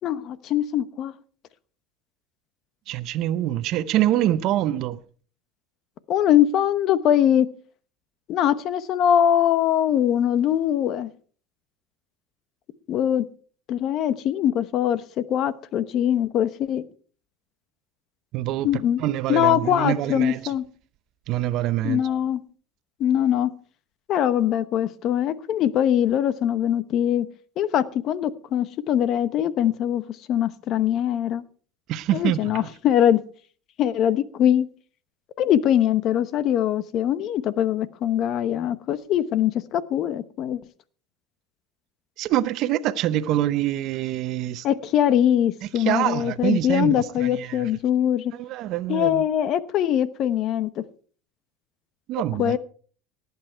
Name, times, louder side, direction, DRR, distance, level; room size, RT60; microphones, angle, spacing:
voice 1, 0.0-1.1 6.1-7.5 8.3-11.1 12.9-13.2 13.7-16.8 18.6-19.0 19.3-20.6 21.8-22.4 23.0-23.5 24.1-27.3 27.6-31.4 32.1-33.2 33.8-34.7 35.4-40.6 44.6-48.3 48.9-50.8 52.4-52.6, left 10 dB, 50° left, 0.9 m, -22 dB
voice 2, 2.9-5.0 18.3-20.4 21.3-22.0 31.9-32.7 42.2-44.6 45.8-47.7 48.3-49.2 52.1-52.6, right 13 dB, 55° right, 0.8 m, -25 dB
18.0 x 8.3 x 4.5 m
supercardioid pair, 100°, 0 cm